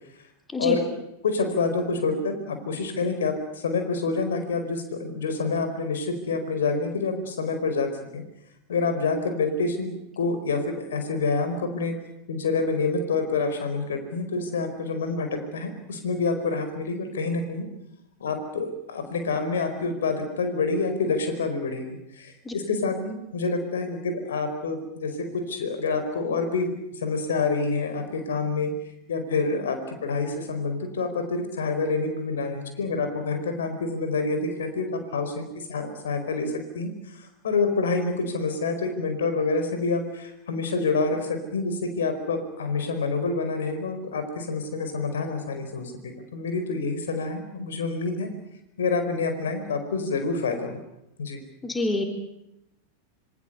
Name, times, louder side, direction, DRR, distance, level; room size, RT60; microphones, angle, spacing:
voice 1, 1.2-8.2 8.7-11.9 12.3-17.7 18.2-28.7 29.1-48.3 48.8-50.8 51.2-51.4, left 4 dB, 65° left, 7 dB, 4.9 m, -27 dB
voice 2, 51.6-52.0, left 2 dB, 10° left, 4 dB, 3.7 m, -26 dB
26.5 x 24.5 x 6.9 m, 0.85 s
figure-of-eight pair, 90°, 0 cm